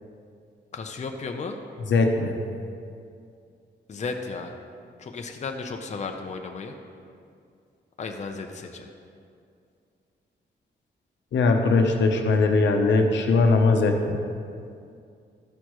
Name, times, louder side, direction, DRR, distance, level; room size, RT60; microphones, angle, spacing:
voice 1, 0.7-1.6 3.9-4.5 5.0-6.8 8.0-8.9, left 4 dB, 40° left, 4 dB, 0.6 m, -34 dB
voice 2, 1.9-2.3 11.3-14.2, left 3 dB, 80° left, 4 dB, 0.8 m, -20 dB
13.0 x 6.4 x 3.1 m, 2.4 s
cardioid pair, 105°, 19 cm